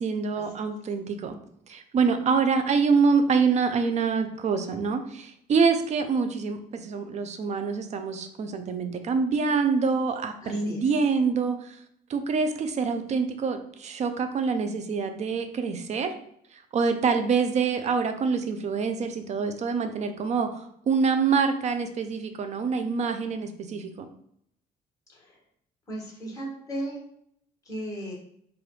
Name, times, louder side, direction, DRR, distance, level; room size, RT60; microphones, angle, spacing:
voice 1, 0.0-1.3 1.7-11.8 12.1-16.1 16.7-24.1, right 5 dB, 45° right, 7 dB, 0.5 m, -26 dB
voice 2, 10.4-10.9 25.1-25.4 25.9-27.0 27.6-28.1, right 1 dB, 20° left, -3 dB, 1.6 m, -36 dB
4.8 x 2.5 x 3.1 m, 0.70 s
cardioid pair, 110°, 17 cm